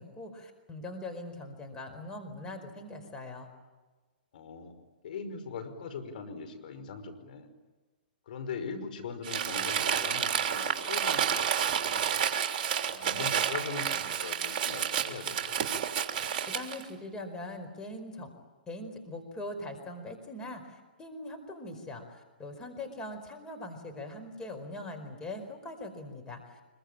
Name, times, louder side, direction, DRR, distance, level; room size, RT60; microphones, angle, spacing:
voice 1, 0.0-3.5 16.5-18.3 18.7-26.6, left 1 dB, 15° left, 4 dB, 4.6 m, -41 dB
voice 2, 4.3-7.5 8.3-11.5 11.8-12.2 12.9-15.7, left 5 dB, 60° left, 9 dB, 5.2 m, -41 dB
Crumpling crinkling, 9.2-16.8, right 8 dB, 45° right, 3.1 m, -30 dB
25.5 x 23.0 x 8.9 m, 1.3 s
hypercardioid pair, 135°, 5 cm